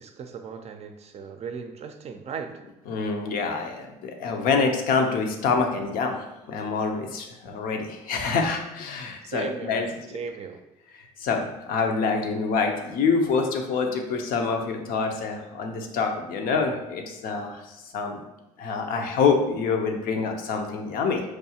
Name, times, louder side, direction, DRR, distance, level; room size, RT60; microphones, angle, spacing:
voice 1, 0.0-2.5 9.3-10.6, right 5 dB, 45° right, 6 dB, 0.4 m, -37 dB
voice 2, 2.9-9.9 11.2-17.6 17.9-18.2 18.6-21.2, left 5 dB, 70° left, 4 dB, 0.6 m, -26 dB
4.6 x 2.3 x 2.8 m, 0.95 s
supercardioid pair, 75°, 15 cm